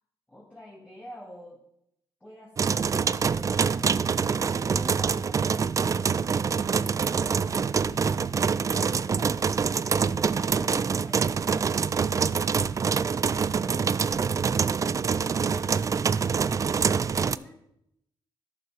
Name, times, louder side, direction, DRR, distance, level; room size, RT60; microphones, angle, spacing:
voice 1, 0.3-1.6 2.2-6.7 7.1-12.5 13.2-14.3 15.4-17.6, left 1 dB, 15° left, -4 dB, 2.4 m, -48 dB
sound 1, 2.6-17.4, right 6 dB, 35° right, 0.3 m, -25 dB
11.0 x 6.9 x 5.0 m, 0.79 s
cardioid pair, 75°, 9 cm